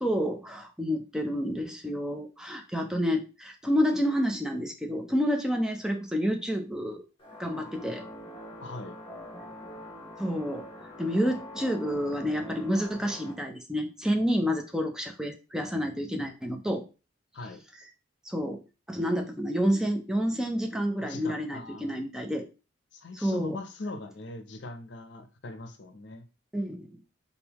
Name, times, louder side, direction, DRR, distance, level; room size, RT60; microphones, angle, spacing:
voice 1, 0.0-7.0 7.4-8.0 10.2-10.7 11.0-16.8 18.2-18.6 18.9-22.4 23.1-23.6 26.5-27.0, equal, 5° right, 0.5 m, -29 dB
sound 1, 7.2-13.3, equal, 25° left, 1.1 m, -44 dB
voice 2, 8.6-9.0 17.3-17.6 21.0-22.0 22.9-26.3, left 2 dB, 65° left, 0.6 m, -41 dB
4.0 x 3.7 x 2.9 m
head